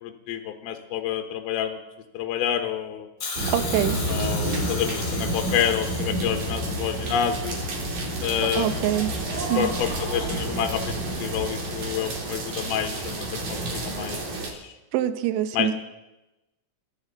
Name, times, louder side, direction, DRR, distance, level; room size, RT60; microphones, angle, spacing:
voice 1, 0.0-1.8 2.1-3.1 4.1-7.6 8.2-8.9 9.5-14.7 15.5-15.8, left 9 dB, 80° left, 5 dB, 2.2 m, -28 dB
Hiss, 3.2-7.3 8.4-8.5, left 4 dB, 35° left, 2.2 m, -36 dB
sound 1, 3.4-14.5, right 1 dB, 45° right, 2.8 m, -29 dB
voice 2, 3.5-4.0 8.5-9.1 9.4-9.7 14.9-15.7, right 11 dB, 80° right, 11 dB, 2.9 m, -25 dB
23.0 x 11.5 x 3.9 m, 1.0 s
omnidirectional pair, 5.9 m